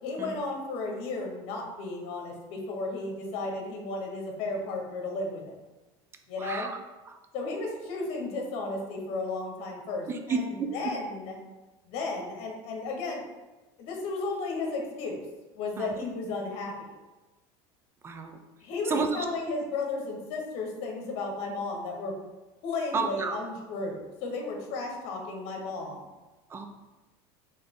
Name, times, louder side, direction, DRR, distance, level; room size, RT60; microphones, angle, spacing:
voice 1, 0.0-5.5 6.3-6.7 7.3-11.4 11.9-13.2 13.8-15.2 15.5-16.9 18.6-22.1 22.6-26.1, left 3 dB, 60° left, 1 dB, 1.0 m, -34 dB
voice 2, 6.4-6.8 7.1-7.2 10.1-10.7 15.8-15.9 18.0-18.4 18.9-19.3 22.9-23.4 26.5-26.7, right 4 dB, 20° right, 6 dB, 0.4 m, -31 dB
3.9 x 3.3 x 3.6 m, 1.1 s
supercardioid pair, 135°, 12 cm